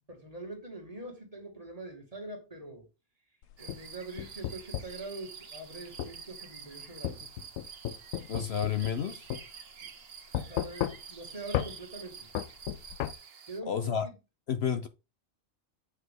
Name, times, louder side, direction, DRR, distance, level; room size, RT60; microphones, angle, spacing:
voice 1, 0.1-2.9 3.6-7.2 9.8-9.9 10.3-12.3 13.5-14.1, right 2 dB, 30° right, 2.2 m, -44 dB
sound 1, 3.4-5.0 6.0-6.2 7.0-9.0 9.3-9.4 10.3-11.2 11.5-11.7 12.4-13.1, left 12 dB, 85° left, 1.0 m, -34 dB
sound 2, 3.6-13.6, right 6 dB, 55° right, 1.1 m, -48 dB
voice 2, 8.3-9.3 13.7-14.1 14.5-14.9, left 7 dB, 60° left, 0.9 m, -30 dB
8.5 x 5.8 x 3.6 m
omnidirectional pair, 1.3 m